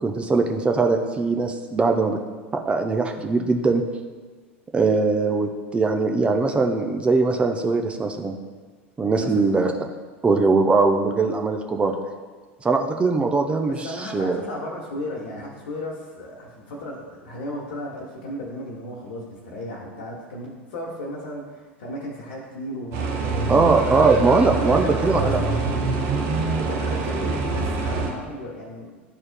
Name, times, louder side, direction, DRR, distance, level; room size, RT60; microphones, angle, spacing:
voice 1, 0.0-2.2 2.5-3.8 4.7-8.3 9.0-9.7 10.2-11.9 12.6-14.4 23.5-25.4, right 3 dB, 15° right, 4 dB, 0.6 m, -21 dB
voice 2, 9.1-9.5 13.7-24.0 24.6-26.0 26.6-28.9, left 1 dB, 55° left, -4 dB, 1.1 m, -34 dB
sound 1, 22.9-28.1, right 4 dB, 45° right, 1.0 m, -25 dB
11.5 x 4.3 x 2.2 m, 1.4 s
figure-of-eight pair, 80°, 7 cm